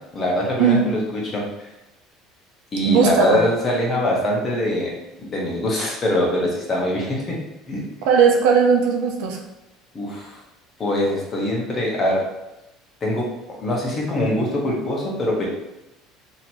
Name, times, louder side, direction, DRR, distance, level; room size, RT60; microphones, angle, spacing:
voice 1, 0.1-1.7 2.7-7.4 7.7-7.9 9.9-10.4 10.8-12.2 13.0-15.5, left 1 dB, 25° left, -2 dB, 0.9 m, -23 dB
voice 2, 2.8-3.4 8.0-9.4, right 6 dB, 85° right, 1 dB, 0.7 m, -17 dB
2.8 x 2.8 x 4.4 m, 0.96 s
cardioid pair, 160°, 0 cm